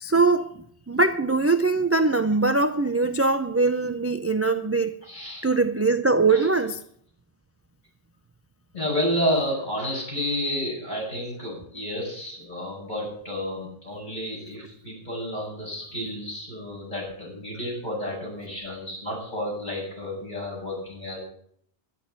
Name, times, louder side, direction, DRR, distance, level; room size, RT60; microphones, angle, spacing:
voice 1, 0.0-5.0 5.4-6.8, right 3 dB, 20° right, 0.4 m, -22 dB
voice 2, 5.0-5.5 6.3-6.5 8.7-21.2, equal, 40° left, 7.7 m, -30 dB
11.0 x 10.5 x 8.1 m
omnidirectional pair, 1.2 m